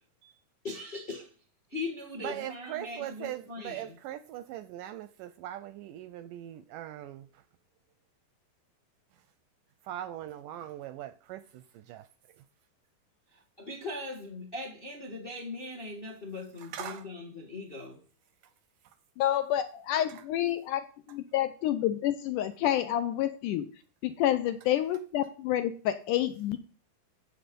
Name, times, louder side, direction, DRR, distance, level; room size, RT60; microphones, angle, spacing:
voice 1, 0.6-1.3 1.7-3.9 13.3-18.0, left 2 dB, 35° left, 0.8 m, -40 dB
voice 2, 2.2-7.3 9.9-12.1 12.4-12.5 16.6-17.0 20.1-20.2, right 12 dB, 80° right, 2.0 m, -40 dB
voice 3, 19.2-20.8 21.1-23.7 24.0-26.6, left 12 dB, 75° left, 1.9 m, -28 dB
10.0 x 7.8 x 5.3 m
omnidirectional pair, 4.2 m